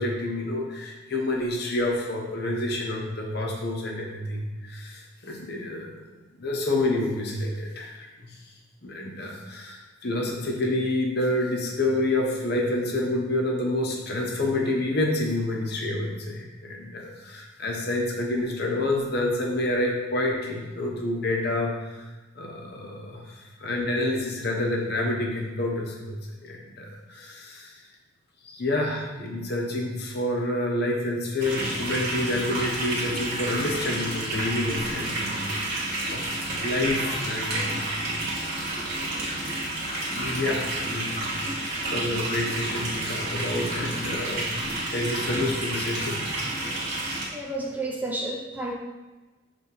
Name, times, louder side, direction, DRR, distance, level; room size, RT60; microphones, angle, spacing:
voice 1, 0.0-8.4 8.8-26.2 26.4-27.9 28.4-35.6 36.1-37.8 39.2-39.5 40.1-41.4 41.9-44.5 44.9-46.6, left 1 dB, 55° left, -1 dB, 1.0 m, -28 dB
sound 1, 31.4-47.2, right 1 dB, 50° right, 1.7 m, -30 dB
voice 2, 47.0-48.7, right 2 dB, 10° right, -1 dB, 0.5 m, -32 dB
7.1 x 3.5 x 4.2 m, 1.2 s
head